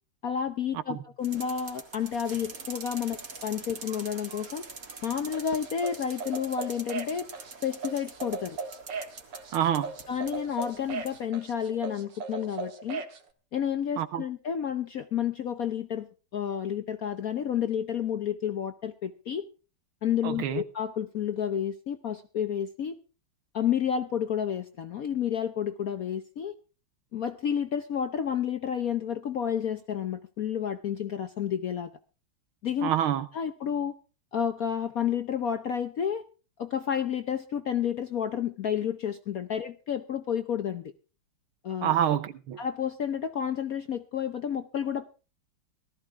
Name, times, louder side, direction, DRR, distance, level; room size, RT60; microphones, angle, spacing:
voice 1, 0.2-4.7 5.0-7.3 7.6-8.6 10.1-13.0 13.5-16.1 16.3-19.4 20.0-23.0 23.5-26.5 27.1-31.9 32.6-32.9 33.3-34.0 34.3-36.2 36.6-40.9 41.6-42.0 42.6-45.0, left 8 dB, 60° left, 0.9 m, -30 dB
sound 1, 1.2-11.2, right 4 dB, 40° right, 2.2 m, -44 dB
sound 2, 5.3-13.2, right 4 dB, 60° right, 2.0 m, -37 dB
voice 2, 9.5-9.9 14.0-14.2 20.2-20.6 32.8-33.3 41.8-42.6, right 10 dB, 75° right, 1.8 m, -27 dB
18.0 x 13.5 x 3.6 m
omnidirectional pair, 2.4 m